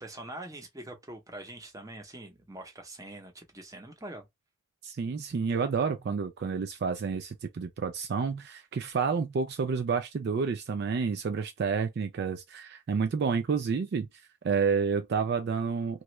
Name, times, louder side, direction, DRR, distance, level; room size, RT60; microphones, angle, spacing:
voice 1, 0.0-4.3, right 1 dB, 15° right, 0.7 m, -44 dB
voice 2, 4.8-14.1 14.4-16.0, right 5 dB, 50° right, 0.3 m, -29 dB
3.0 x 2.3 x 3.0 m
head